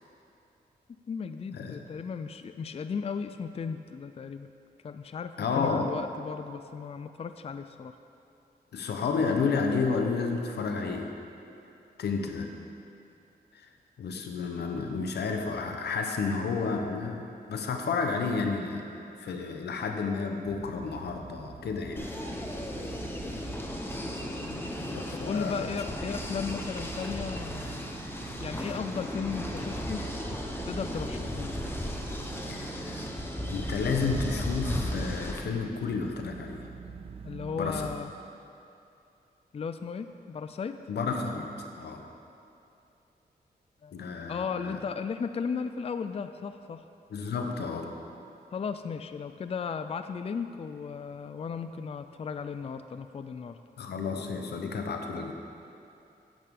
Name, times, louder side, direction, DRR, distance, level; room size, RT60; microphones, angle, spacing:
voice 1, 1.1-4.5 4.8-8.0 24.4-24.7 25.3-27.9 28.4-30.0 30.6-31.5 37.2-38.1 39.5-40.8 43.8-44.0 44.3-46.8 48.5-53.6, left 6 dB, 35° left, 10 dB, 0.4 m, -35 dB
voice 2, 5.4-5.9 8.7-11.1 12.0-12.5 13.5-13.7 14.0-18.8 19.2-22.1 24.9-25.6 32.5-33.1 33.5-36.7 37.6-37.9 40.9-41.5 41.8-42.0 43.9-44.8 47.1-48.0 53.8-55.3, left 4 dB, 90° left, 4 dB, 0.8 m, -31 dB
sound 1, 20.5-38.0, right 5 dB, 35° right, 0.5 m, -44 dB
sound 2, 22.0-35.4, left 1 dB, 15° left, 1.1 m, -36 dB
12.0 x 8.3 x 3.7 m, 2.7 s
cardioid pair, 70°, 17 cm